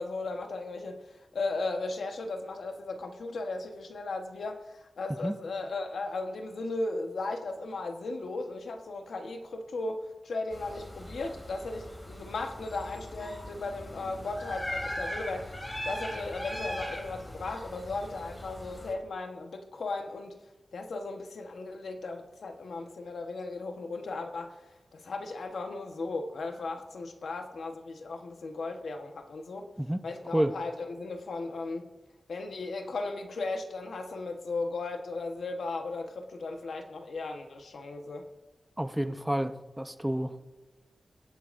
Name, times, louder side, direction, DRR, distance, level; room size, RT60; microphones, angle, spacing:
voice 1, 0.0-20.4 20.7-24.6 24.9-29.7 30.0-31.9 32.3-38.3, left 3 dB, 85° left, 4 dB, 1.2 m, -36 dB
sound 1, 10.5-18.9, left 1 dB, 25° left, 2.5 m, -40 dB
voice 2, 38.8-40.4, right 1 dB, 10° right, 9 dB, 0.7 m, -29 dB
23.5 x 8.4 x 2.6 m, 1.1 s
wide cardioid pair, 75°, 0 cm